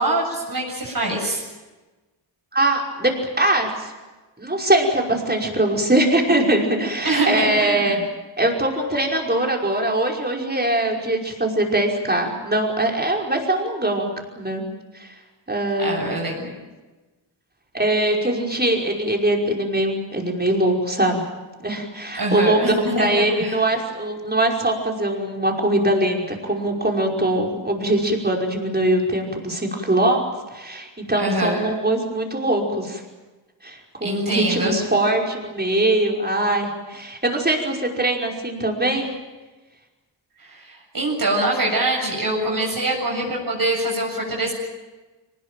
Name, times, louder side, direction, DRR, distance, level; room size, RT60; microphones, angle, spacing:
voice 1, 0.0-1.4 7.0-7.9 15.8-16.5 22.2-23.6 31.2-31.7 34.0-34.8 40.4-44.5, right 1 dB, 50° right, -2 dB, 7.6 m, -24 dB
voice 2, 2.5-3.9 4.4-8.0 8.4-14.1 14.4-14.6 14.9-15.1 15.5-16.2 17.7-21.2 21.6-33.0 33.6-39.1, right 1 dB, 20° right, 1 dB, 5.4 m, -22 dB
23.5 x 20.0 x 9.2 m, 1.2 s
cardioid pair, 80°, 46 cm